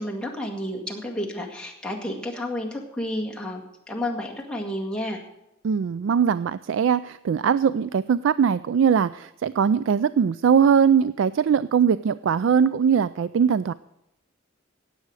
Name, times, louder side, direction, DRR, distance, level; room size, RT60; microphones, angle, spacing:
voice 1, 0.0-5.2, left 1 dB, 5° left, -2 dB, 1.9 m, -31 dB
voice 2, 5.6-13.7, right 7 dB, 65° right, 16 dB, 0.3 m, -21 dB
18.0 x 7.7 x 4.8 m, 0.89 s
head